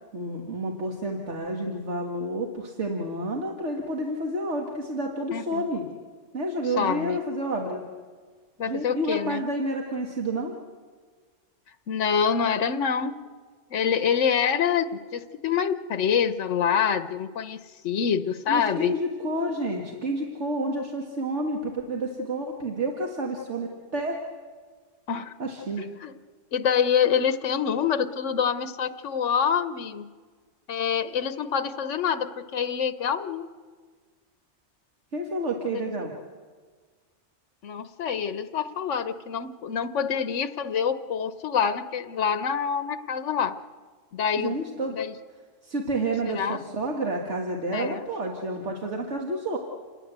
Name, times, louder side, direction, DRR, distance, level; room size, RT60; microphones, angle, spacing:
voice 1, 0.1-5.8 6.3-7.8 8.7-10.5 18.5-24.2 25.4-25.9 35.1-36.1 44.4-45.0 45.6-49.6, right 1 dB, 75° right, 1 dB, 2.2 m, -30 dB
voice 2, 5.3-5.6 6.8-7.2 8.6-9.4 11.9-13.1 13.7-18.9 25.1-25.3 25.8-26.1 26.5-30.1 30.7-33.5 35.7-35.9 37.6-43.5 44.1-44.6 44.9-45.1 46.3-46.6 47.7-48.0, left 7 dB, 85° left, 11 dB, 1.3 m, -26 dB
28.0 x 20.0 x 8.1 m, 1.5 s
omnidirectional pair, 1.2 m